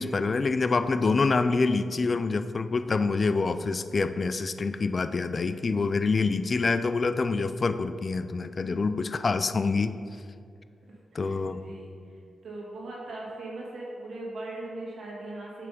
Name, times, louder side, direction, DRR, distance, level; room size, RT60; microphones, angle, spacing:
voice 1, 0.0-10.0 11.1-11.6, left 4 dB, 50° left, 11 dB, 0.4 m, -26 dB
voice 2, 11.1-15.7, right 2 dB, 75° right, -4 dB, 1.8 m, -40 dB
7.8 x 3.4 x 5.3 m, 2.2 s
cardioid pair, 55°, 0 cm